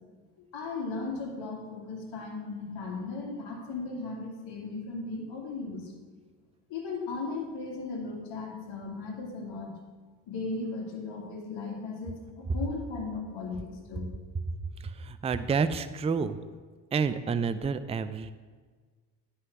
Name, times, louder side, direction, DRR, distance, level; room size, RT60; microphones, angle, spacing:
voice 1, 0.4-5.9 6.7-9.8 10.3-14.1, left 3 dB, 60° left, -1 dB, 2.4 m, -37 dB
voice 2, 14.8-16.4 16.9-18.3, right 5 dB, 15° right, 12 dB, 0.4 m, -29 dB
9.5 x 5.8 x 5.9 m, 1.5 s
hypercardioid pair, 55°, 49 cm